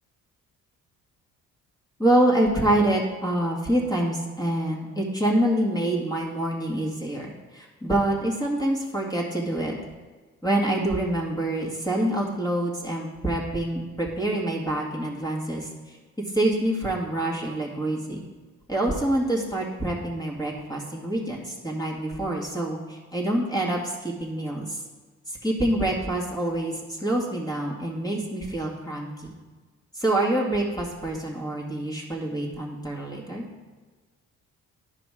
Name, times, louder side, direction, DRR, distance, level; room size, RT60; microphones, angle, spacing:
voice 1, 2.0-9.8 10.4-16.0 16.3-18.2 18.7-24.8 25.3-29.3 29.9-33.5, right 1 dB, 10° left, -3 dB, 2.1 m, -26 dB
11.5 x 5.0 x 5.0 m, 1.4 s
hypercardioid pair, 50°, 41 cm